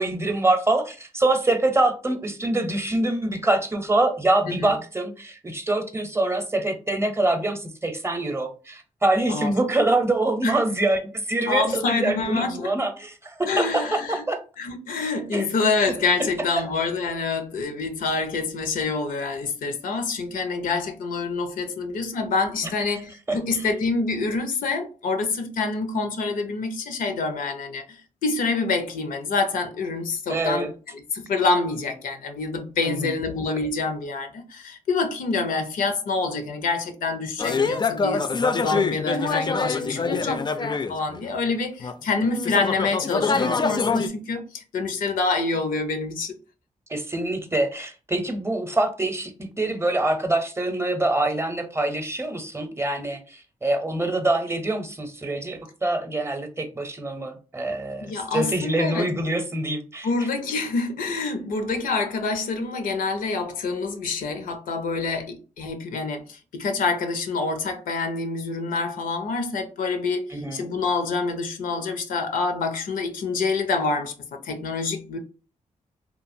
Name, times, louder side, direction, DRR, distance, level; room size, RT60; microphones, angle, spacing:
voice 1, 0.0-14.4 15.3-15.5 22.6-22.7 23.3-23.7 30.3-30.7 32.8-33.2 46.9-60.3 70.3-70.7, right 2 dB, 20° right, 0.6 m, -25 dB
voice 2, 4.5-4.8 9.3-9.5 10.4-10.6 11.5-12.7 13.4-14.2 14.6-46.3 58.0-59.2 60.0-75.2, left 4 dB, 90° left, 0.5 m, -27 dB
sound 1, 37.4-41.3 41.8-44.1, left 4 dB, 30° left, 0.3 m, -25 dB
2.9 x 2.3 x 2.6 m
cardioid pair, 60°, 14 cm